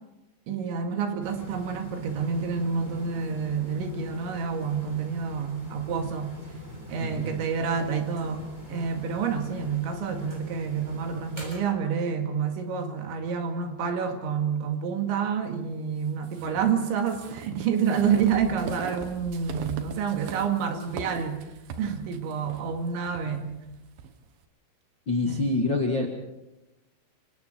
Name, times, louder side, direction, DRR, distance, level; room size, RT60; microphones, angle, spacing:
voice 1, 0.5-6.4 6.9-21.5 21.8-23.6 25.3-25.5, right 6 dB, 85° right, 4 dB, 4.4 m, -28 dB
sound 1, 1.2-11.6, right 1 dB, 10° right, 6.9 m, -43 dB
voice 2, 7.0-7.3 25.1-26.1, left 2 dB, 50° left, 0 dB, 1.4 m, -26 dB
sound 2, 16.2-24.1, right 6 dB, 65° right, 2.9 m, -40 dB
27.5 x 25.5 x 4.5 m, 0.97 s
omnidirectional pair, 5.2 m